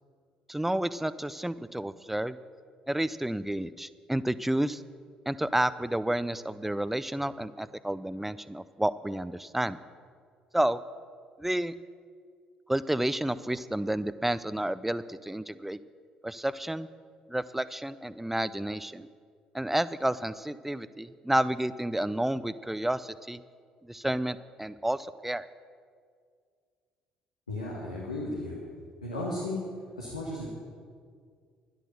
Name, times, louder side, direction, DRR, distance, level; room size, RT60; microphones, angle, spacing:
voice 1, 0.5-2.4 2.9-4.8 5.3-9.8 10.5-10.8 11.4-11.7 12.7-15.8 16.2-16.9 17.3-19.1 19.5-23.4 23.8-25.5, right 1 dB, 5° right, 16 dB, 0.5 m, -30 dB
voice 2, 27.5-28.6 29.0-29.6 30.0-30.5, left 2 dB, 85° left, -4 dB, 1.6 m, -34 dB
12.0 x 11.0 x 6.7 m, 2.1 s
figure-of-eight pair, 50°, 4 cm